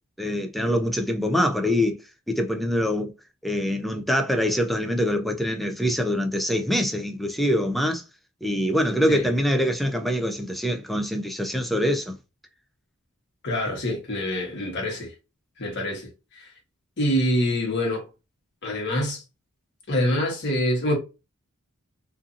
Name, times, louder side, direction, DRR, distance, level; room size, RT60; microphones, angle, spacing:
voice 1, 0.2-2.0 2.3-3.1 3.4-8.0 8.4-12.2, equal, ahead, 0.3 m, -24 dB
voice 2, 13.4-15.1 15.6-16.5 17.0-18.1 18.6-19.2 19.9-21.0, left 1 dB, 55° left, 1.1 m, -25 dB
2.6 x 2.5 x 2.4 m
head